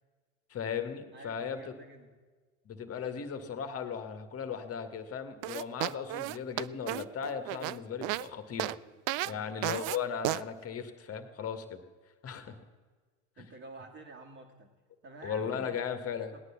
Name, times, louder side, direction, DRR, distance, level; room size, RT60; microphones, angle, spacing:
voice 1, 0.5-1.6 2.7-8.8 9.3-11.8 12.2-12.6 13.4-13.5 15.2-16.3, left 7 dB, 35° left, 8 dB, 1.9 m, -37 dB
voice 2, 1.1-2.2 9.1-9.5 12.5-12.7 13.4-14.7 15.0-15.9 16.3-16.4, right 3 dB, 35° right, -5 dB, 2.4 m, -50 dB
sound 1, 5.4-8.3 8.6-8.8 9.1-9.3 9.6-10.0 10.2-10.4, right 18 dB, 55° right, 0.5 m, -33 dB
18.0 x 10.0 x 7.3 m, 1.4 s
hypercardioid pair, 85°, 40 cm